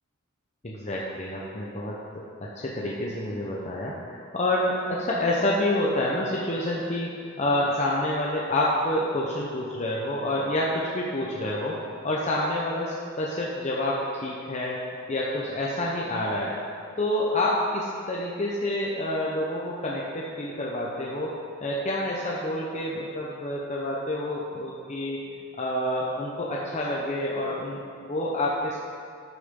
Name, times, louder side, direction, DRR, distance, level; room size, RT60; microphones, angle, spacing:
voice 1, 0.6-2.0 2.4-14.8 15.1-16.5 17.0-21.3 21.6-25.2 25.5-27.8 28.1-28.8, left 1 dB, 35° left, -4 dB, 0.8 m, -28 dB
13.5 x 6.7 x 3.8 m, 2.4 s
head